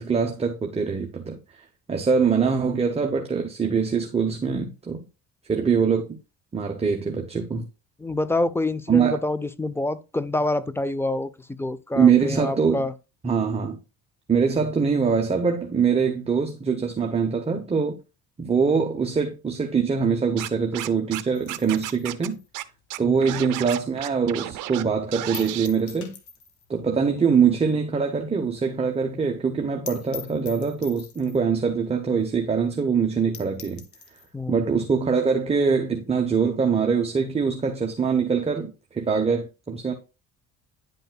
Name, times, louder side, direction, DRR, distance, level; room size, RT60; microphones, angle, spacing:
voice 1, 0.0-1.4 1.9-5.0 5.5-6.1 6.5-7.7 8.9-9.2 11.9-12.9 13.2-13.8 14.3-18.0 18.4-22.4 23.0-26.1 26.7-33.8 34.5-39.9, right 6 dB, 20° right, 0.8 m, -23 dB
voice 2, 8.0-12.9 23.0-23.3 34.3-34.6, left 2 dB, 10° left, 0.3 m, -27 dB
Scratching (performance technique), 20.4-21.2 21.5-22.3 22.5-22.6 22.9-24.8 25.1-25.7, right 16 dB, 65° right, 0.6 m, -33 dB
sound 1, 21.3-24.0 24.3-24.4 24.7-24.8 25.3-26.7 27.0-27.1 27.4-27.5 27.9-28.0 28.3-28.4 28.6-28.7 29.0-29.1 29.5-29.6 29.9-31.5 32.2-32.3 32.6-32.7 33.1-33.2 33.3-34.3, left 7 dB, 60° left, 1.2 m, -43 dB
10.0 x 5.4 x 2.2 m
cardioid pair, 105°, 33 cm